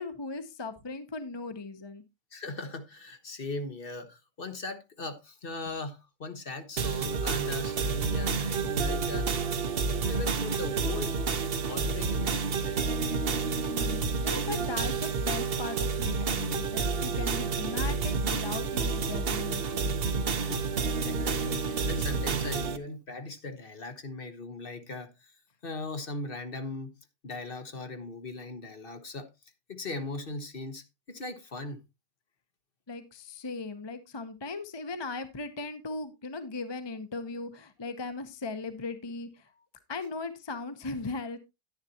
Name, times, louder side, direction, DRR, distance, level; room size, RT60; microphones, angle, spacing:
voice 1, 0.0-2.0 13.7-20.0 32.9-39.5 39.9-41.4, left 3 dB, 25° left, 0.7 m, -38 dB
voice 2, 2.3-9.3 10.1-11.2 11.7-12.8 20.4-26.9 27.2-31.8, left 2 dB, 40° left, 1.2 m, -39 dB
sound 1, 6.8-22.8, right 4 dB, 45° right, 0.9 m, -29 dB
10.5 x 10.5 x 2.8 m
omnidirectional pair, 1.6 m